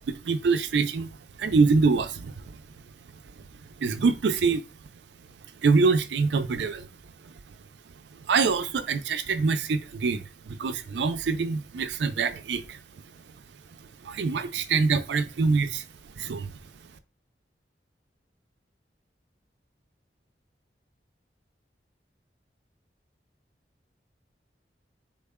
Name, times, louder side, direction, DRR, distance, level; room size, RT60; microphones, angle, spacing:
voice 1, 0.1-1.1 1.4-2.3 3.8-4.6 5.6-6.9 8.3-12.8 14.0-15.8 16.2-16.5, right 4 dB, 80° right, 0.4 m, -25 dB
3.6 x 2.1 x 3.5 m
head